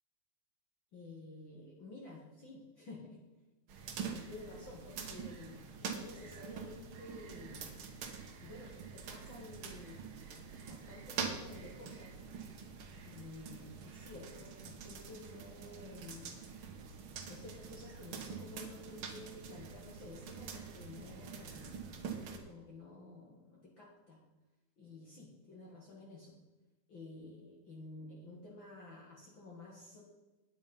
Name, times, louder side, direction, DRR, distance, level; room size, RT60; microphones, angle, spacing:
voice 1, 0.9-3.2 3.7-3.9 4.3-7.8 8.4-12.2 13.0-16.4 17.3-24.2 24.8-26.4 26.9-30.0, left 2 dB, 45° left, -3 dB, 2.0 m, -52 dB
sound 1, 3.7-22.4, right 6 dB, 55° right, 1.6 m, -45 dB
9.7 x 9.7 x 5.4 m, 1.1 s
omnidirectional pair, 3.6 m